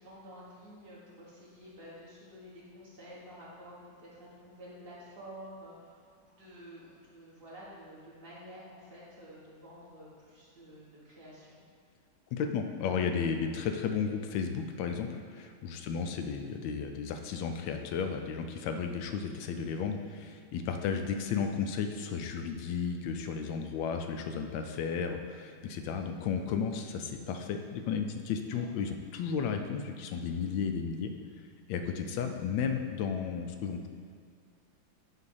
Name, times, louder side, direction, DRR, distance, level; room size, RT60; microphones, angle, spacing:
voice 1, 0.0-11.6 15.9-16.1 28.5-28.6 31.9-32.2, equal, 35° right, -6 dB, 1.4 m, -50 dB
voice 2, 12.3-31.1 31.7-33.9, left 6 dB, 85° left, 6 dB, 1.3 m, -33 dB
7.7 x 2.7 x 5.4 m, 2.3 s
omnidirectional pair, 2.1 m